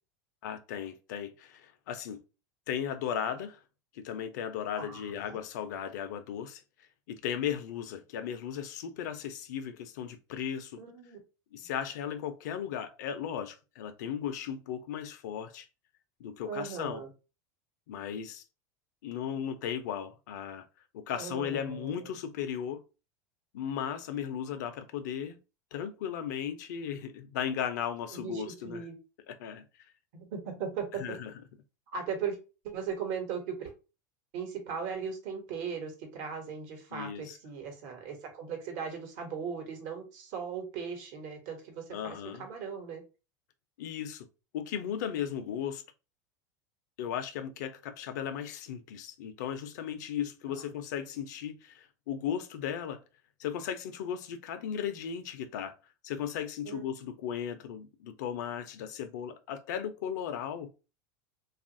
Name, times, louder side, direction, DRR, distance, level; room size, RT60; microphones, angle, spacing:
voice 1, 0.4-2.2 2.7-3.6 3.9-6.6 7.1-10.8 11.5-15.7 16.2-17.0 17.9-18.4 19.0-20.7 20.9-22.8 23.5-25.4 25.7-28.8 29.3-29.6 31.0-31.3 36.9-37.4 41.9-42.5 43.8-44.3 44.5-45.8 47.0-53.0 53.4-55.7 56.0-60.7, left 8 dB, 80° left, 0.5 m, -36 dB
voice 2, 4.7-5.4 10.8-11.2 16.4-17.1 21.2-22.1 28.1-29.0 30.1-31.2 31.9-32.4 32.6-33.7 34.3-43.0 50.5-50.7 56.6-56.8, right 6 dB, 65° right, 1.0 m, -38 dB
2.9 x 2.4 x 2.5 m
supercardioid pair, 125°, 10 cm